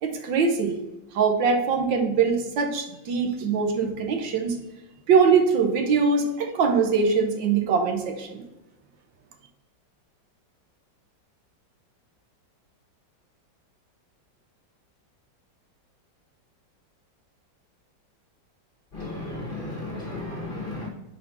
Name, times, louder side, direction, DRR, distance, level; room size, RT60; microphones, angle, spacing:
voice 1, 0.0-0.8 1.1-4.6 5.1-8.4, right 5 dB, 80° right, 3 dB, 1.6 m, -22 dB
voice 2, 18.9-20.9, left 2 dB, 35° left, -2 dB, 0.9 m, -34 dB
4.3 x 4.1 x 5.4 m, 0.99 s
omnidirectional pair, 2.0 m